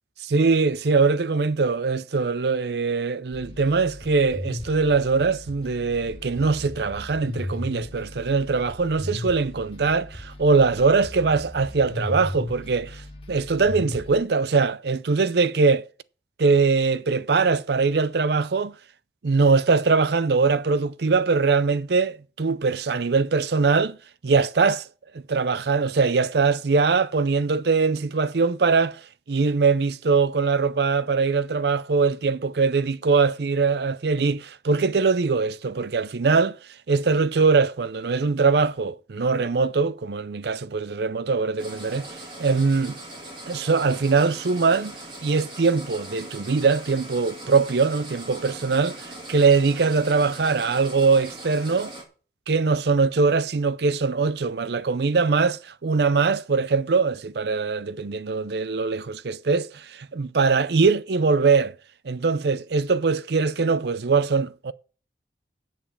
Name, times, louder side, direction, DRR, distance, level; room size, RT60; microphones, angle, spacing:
voice 1, 0.2-13.0 13.3-15.9 16.4-18.7 19.2-24.0 24.2-24.9 25.3-29.0 29.3-36.6 36.9-42.1 42.4-43.0 43.5-44.9 45.2-51.9 52.5-61.7 62.0-64.7, right 4 dB, 65° right, 0.5 m, -22 dB
sound 1, 3.3-14.2, left 1 dB, 30° left, 1.6 m, -36 dB
sound 2, 41.6-52.0, right 1 dB, 30° right, 2.6 m, -40 dB
10.0 x 7.5 x 7.4 m
head